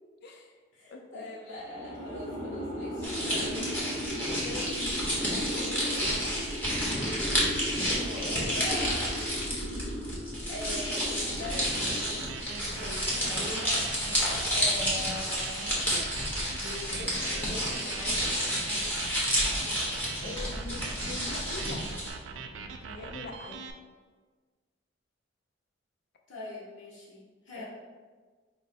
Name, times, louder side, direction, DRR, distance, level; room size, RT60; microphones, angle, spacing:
voice 1, 0.2-0.6 0.9-1.3 4.2-6.3 20.2-22.0 22.3-23.6 27.6-27.7, left 3 dB, 60° left, 2 dB, 0.4 m, -43 dB
voice 2, 0.7-3.7 7.9-9.1 10.5-13.8 14.5-15.9 16.5-18.4 26.3-27.7, left 1 dB, 80° left, -6 dB, 0.9 m, -41 dB
sound 1, 1.5-12.6, equal, 40° left, 1.3 m, -37 dB
sound 2, 3.0-22.1, equal, 10° left, 0.9 m, -30 dB
sound 3, 11.3-23.7, right 5 dB, 80° right, 0.3 m, -42 dB
4.4 x 2.1 x 4.1 m, 1.4 s
head